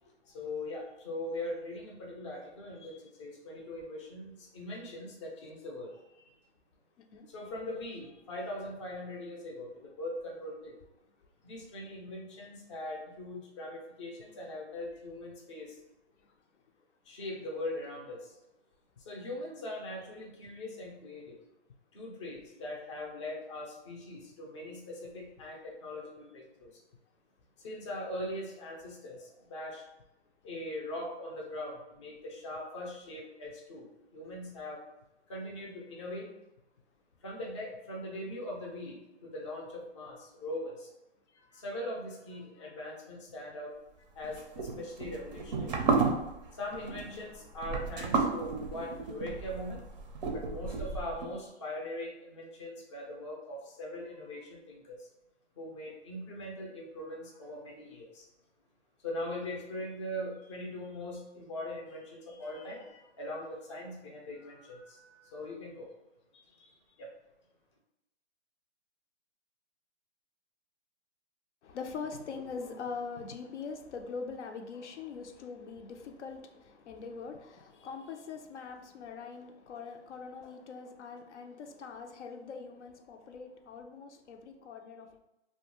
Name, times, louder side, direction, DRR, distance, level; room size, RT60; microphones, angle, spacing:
voice 1, 0.3-6.3 7.3-10.8 11.4-15.8 17.1-18.3 19.0-21.4 21.9-26.8 27.6-29.8 30.4-33.9 34.1-34.8 35.3-36.3 37.2-40.9 41.4-43.7 44.1-45.7 46.5-49.8 50.3-55.1 55.6-58.3 59.0-65.9 66.3-66.7 67.0-67.1, left 1 dB, 25° left, -1 dB, 0.4 m, -41 dB
sound 1, 44.2-51.3, right 4 dB, 40° right, 0.4 m, -32 dB
voice 2, 71.6-85.2, left 5 dB, 80° left, 4 dB, 0.5 m, -43 dB
2.4 x 2.2 x 2.9 m, 0.93 s
hypercardioid pair, 155°, 34 cm